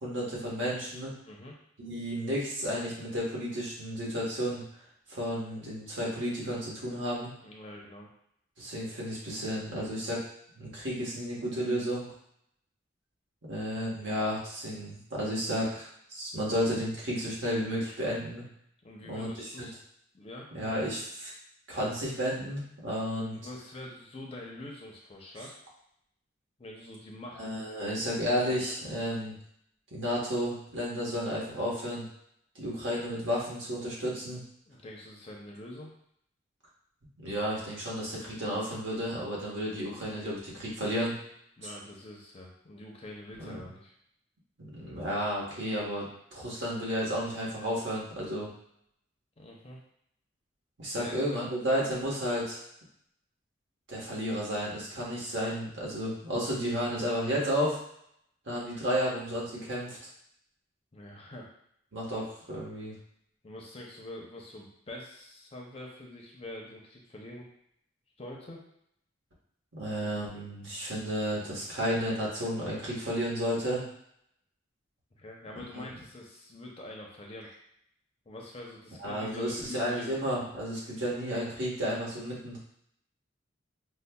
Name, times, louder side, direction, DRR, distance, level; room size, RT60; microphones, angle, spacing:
voice 1, 0.0-1.1 1.8-4.6 5.1-7.3 8.6-10.2 10.5-12.1 13.5-18.4 19.1-19.7 20.5-21.3 21.7-23.4 27.4-29.3 29.9-32.1 32.5-34.4 37.2-41.1 43.4-43.6 44.6-48.5 50.8-52.6 53.9-57.8 58.4-60.0 61.9-62.9 69.7-73.8 75.7-75.8 79.0-82.6, equal, 70° right, -5 dB, 1.2 m, -32 dB
voice 2, 7.4-8.1 18.8-19.7 20.1-20.7 23.3-25.6 26.6-27.4 27.8-28.6 34.7-35.9 41.6-43.9 49.4-49.8 51.0-51.5 60.9-61.5 63.4-67.4 68.2-68.6 75.1-77.5 78.3-80.2, left 1 dB, 30° left, -2 dB, 0.5 m, -45 dB
5.2 x 2.1 x 2.2 m, 0.72 s
head